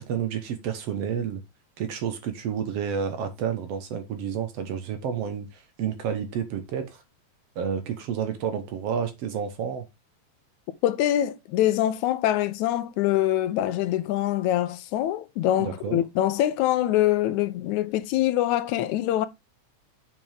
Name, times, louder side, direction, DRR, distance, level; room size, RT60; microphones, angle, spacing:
voice 1, 0.0-1.4 1.8-7.0 7.6-9.9 15.6-16.0, right 7 dB, 65° right, 2.0 m, -30 dB
voice 2, 10.8-19.3, left 13 dB, 85° left, 2.1 m, -24 dB
7.0 x 6.1 x 3.4 m
omnidirectional pair, 3.4 m